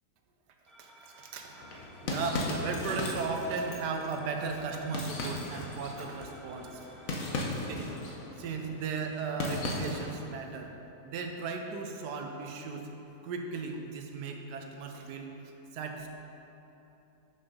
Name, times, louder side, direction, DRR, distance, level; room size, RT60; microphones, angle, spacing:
sound 1, 0.7-7.4, equal, ahead, 0.7 m, -55 dB
voice 1, 0.8-6.8 7.7-7.9 8.4-10.7 11.0-12.9 13.2-15.3 15.7-16.1, right 4 dB, 85° right, 3 dB, 1.3 m, -36 dB
sound 2, 1.6-10.2, left 2 dB, 60° left, 1.2 m, -37 dB
6.6 x 6.1 x 5.3 m, 3.0 s
omnidirectional pair, 1.8 m